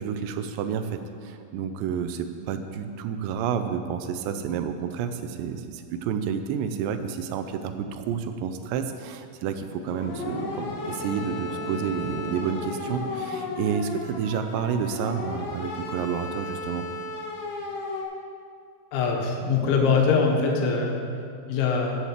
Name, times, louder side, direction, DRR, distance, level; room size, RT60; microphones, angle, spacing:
voice 1, 0.0-16.9, right 7 dB, 80° right, 8 dB, 2.7 m, -30 dB
sound 1, 9.8-14.0, left 1 dB, 40° left, 3.8 m, -40 dB
sound 2, 10.0-18.0, left 2 dB, 70° left, 3.3 m, -35 dB
voice 2, 18.9-22.0, left 5 dB, 85° left, 1 dB, 3.7 m, -23 dB
9.7 x 8.2 x 7.5 m, 2.3 s
omnidirectional pair, 5.2 m